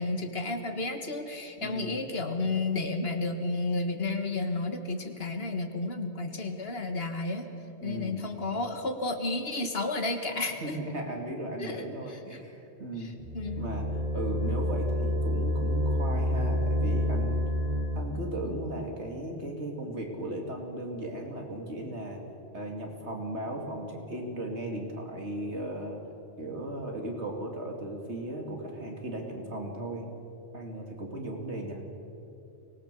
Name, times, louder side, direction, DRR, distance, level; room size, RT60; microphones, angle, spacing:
voice 1, 0.0-7.5 7.8-10.8 11.6-12.4 13.0-13.7, left 2 dB, 55° left, 6 dB, 1.8 m, -32 dB
voice 2, 1.6-2.0 7.8-8.3 10.6-13.1 13.6-13.9 14.1-17.4 17.9-22.2 22.5-26.0 26.4-30.0 30.5-31.8, right 1 dB, 70° right, 2 dB, 2.9 m, -36 dB
sound 1, 13.2-18.3, left 1 dB, 45° right, 4.4 m, -28 dB
24.5 x 19.0 x 6.9 m, 2.9 s
omnidirectional pair, 1.2 m